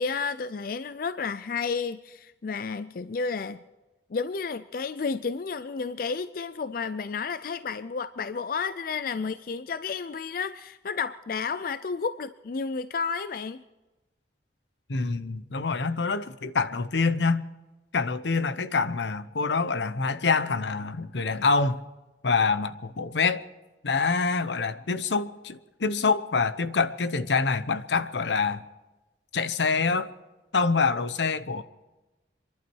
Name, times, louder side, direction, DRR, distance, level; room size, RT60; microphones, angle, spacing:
voice 1, 0.0-3.6 4.1-13.6, left 5 dB, 55° left, 0.4 m, -31 dB
voice 2, 14.9-17.4 17.9-21.9 22.2-23.4 23.8-28.6 29.3-30.1 30.5-31.6, left 4 dB, 85° left, 0.8 m, -26 dB
27.0 x 11.5 x 4.6 m
head